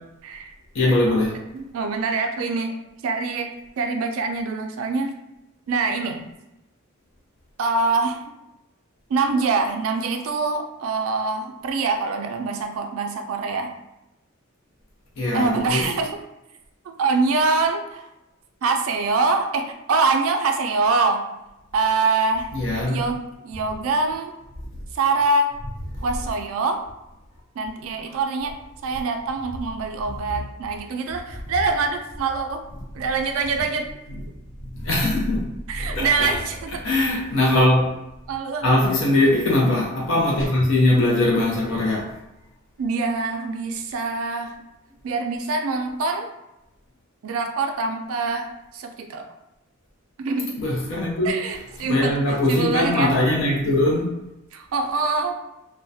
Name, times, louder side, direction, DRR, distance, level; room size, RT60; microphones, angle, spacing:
voice 1, 0.7-1.3 15.2-15.9 22.5-23.0 25.9-26.0 34.7-35.5 35.8-36.3 36.8-37.9 38.6-42.0 50.6-51.3 51.8-54.1, left 1 dB, 65° left, -3 dB, 0.5 m, -21 dB
voice 2, 1.5-2.8 3.0-5.1 5.7-6.2 7.6-8.2 9.1-13.7 15.3-16.2 17.0-18.0 18.6-21.3 21.7-22.5 22.9-24.3 24.9-25.5 26.0-26.8 27.6-28.5 28.8-32.6 32.9-33.9 35.7-36.8 38.3-38.7 42.8-44.5 45.0-46.3 47.2-49.3 50.2-50.6 51.2-53.2 54.5-55.3, right 3 dB, 70° right, 4 dB, 0.3 m, -24 dB
2.3 x 2.1 x 2.6 m, 0.91 s
head